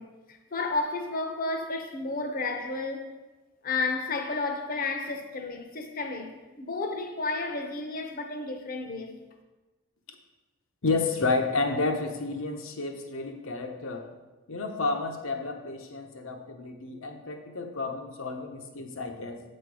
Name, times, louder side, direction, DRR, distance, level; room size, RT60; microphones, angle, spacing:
voice 1, 0.0-3.1 3.6-9.2, left 3 dB, 40° left, 0.8 m, -32 dB
voice 2, 10.8-14.1 14.5-19.4, left 3 dB, 70° left, 0.9 m, -31 dB
8.3 x 4.4 x 4.8 m
head